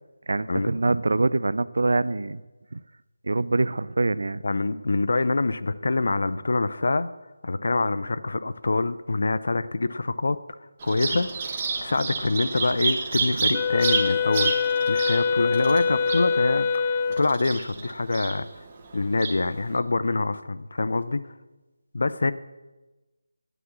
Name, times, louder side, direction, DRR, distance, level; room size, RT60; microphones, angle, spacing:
voice 1, 0.3-2.4 2.7-2.8 3.2-4.4 13.3-13.6, right 2 dB, 65° right, 17 dB, 0.5 m, -24 dB
voice 2, 4.4-7.1 7.4-10.4 10.8-11.3 11.8-14.5 14.9-18.5 18.9-21.2 21.9-22.3, left 3 dB, 65° left, 14 dB, 0.7 m, -25 dB
Bird vocalization bird call bird song, 10.8-19.8, right 4 dB, 30° right, 1.4 m, -31 dB
Wind instrument woodwind instrument, 13.5-17.4, left 6 dB, 20° left, 0.3 m, -24 dB
9.5 x 9.3 x 7.4 m, 1.1 s
figure-of-eight pair, 160°, 0 cm